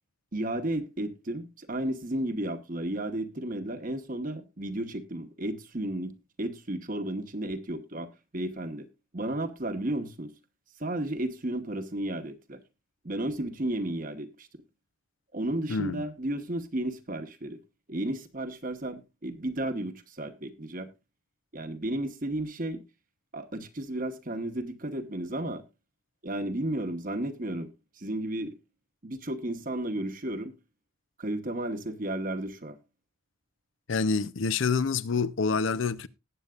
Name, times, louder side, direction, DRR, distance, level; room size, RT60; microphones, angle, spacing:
voice 1, 0.3-8.9 9.1-10.3 10.8-12.6 13.0-14.5 15.3-17.6 17.9-20.9 21.5-22.8 23.3-25.6 26.2-27.7 28.0-28.6 29.0-30.5 31.2-32.8, right 1 dB, 40° right, 1.2 m, -33 dB
voice 2, 33.9-36.1, left 4 dB, 65° left, 0.6 m, -27 dB
19.0 x 8.1 x 2.4 m
head